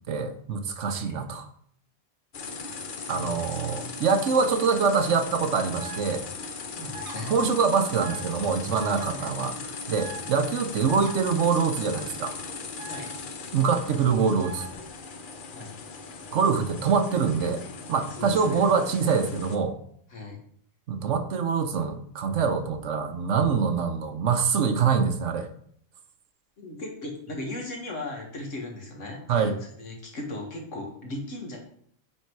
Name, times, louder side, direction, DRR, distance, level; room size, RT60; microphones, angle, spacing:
voice 1, 0.1-1.5 3.1-6.2 7.3-9.6 9.9-12.4 13.5-14.7 16.3-17.6 17.9-19.8 20.9-25.5 29.3-29.6, right 5 dB, 70° right, 8 dB, 1.1 m, -24 dB
voice 2, 0.8-1.2 3.0-3.6 6.7-7.4 9.1-9.3 12.9-13.1 15.5-15.8 18.2-18.6 20.1-20.4 26.6-31.6, left 2 dB, 75° left, 1 dB, 2.0 m, -37 dB
sound 1, 2.3-19.6, left 4 dB, 50° left, 0.8 m, -38 dB
sound 2, 5.8-6.0 6.9-7.2 8.0-8.2 8.8-9.1 10.0-10.2 10.9-11.1 12.8-13.0 14.4-14.7, right 1 dB, 85° right, 1.5 m, -40 dB
8.8 x 3.8 x 4.6 m, 0.63 s
omnidirectional pair, 1.3 m